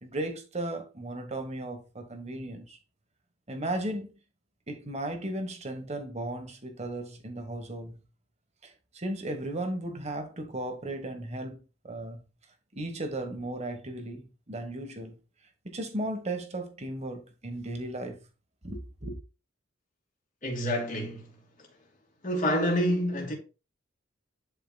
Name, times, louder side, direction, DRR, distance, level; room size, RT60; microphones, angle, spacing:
voice 1, 0.0-2.8 3.5-4.1 4.7-8.0 8.6-12.2 12.7-15.2 15.6-18.2 18.6-19.2, right 1 dB, 35° right, 1.3 m, -36 dB
voice 2, 20.4-21.3 22.2-23.3, equal, 40° left, 2.9 m, -27 dB
10.5 x 4.9 x 2.3 m
head